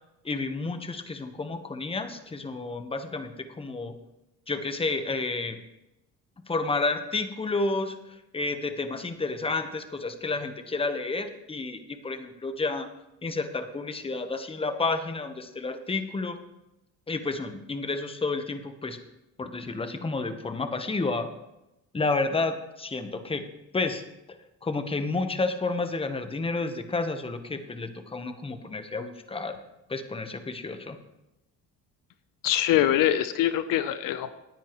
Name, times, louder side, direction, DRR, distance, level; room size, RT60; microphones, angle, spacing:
voice 1, 0.2-3.9 4.5-5.6 6.5-12.9 13.2-16.4 17.1-19.0 19.4-21.3 21.9-23.4 23.7-24.0 24.6-29.6 29.9-31.0, left 3 dB, 15° left, 8 dB, 1.1 m, -30 dB
voice 2, 32.4-34.3, left 12 dB, 75° left, 12 dB, 0.8 m, -23 dB
18.0 x 10.0 x 3.1 m, 0.92 s
cardioid pair, 100°, 33 cm